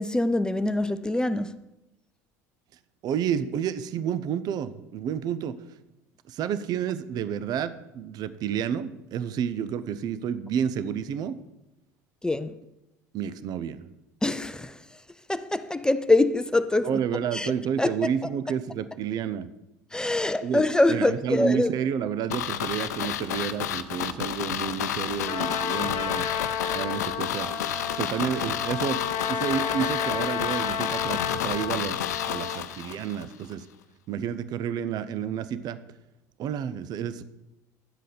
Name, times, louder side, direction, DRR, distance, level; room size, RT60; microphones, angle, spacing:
voice 1, 0.0-1.6 12.2-12.5 14.2-14.9 15.3-17.0 17.3-17.5 17.8-17.9 19.9-21.7 25.4-25.5, left 2 dB, 10° left, 0.5 m, -24 dB
voice 2, 3.0-5.6 6.3-11.4 13.1-13.9 16.8-19.5 20.4-26.3 26.7-27.5 28.0-33.7 34.1-35.8 36.4-37.2, right 8 dB, 50° right, 0.6 m, -30 dB
sound 1, 22.3-33.2 33.5-33.6, left 10 dB, 80° left, 0.6 m, -31 dB
Trumpet, 25.3-32.6, left 7 dB, 55° left, 1.2 m, -31 dB
11.0 x 7.6 x 5.1 m
hypercardioid pair, 70°, 9 cm